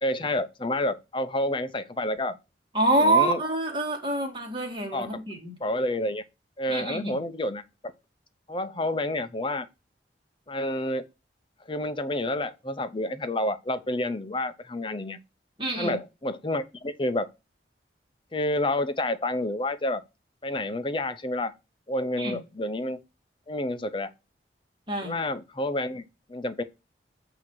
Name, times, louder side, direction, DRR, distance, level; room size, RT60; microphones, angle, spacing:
voice 1, 0.0-2.4 3.0-3.4 4.9-5.2 5.6-6.2 6.6-7.6 8.5-9.7 10.5-11.0 11.7-15.2 15.8-17.3 18.3-20.0 20.4-21.5 21.9-23.0 23.5-24.1 25.0-26.0 26.3-26.6, left 1 dB, 25° left, 0.7 m, -29 dB
voice 2, 2.7-5.5 6.7-7.2 15.6-16.0 22.2-22.4 24.9-25.2, right 2 dB, 25° right, 2.0 m, -26 dB
8.3 x 2.9 x 6.3 m
head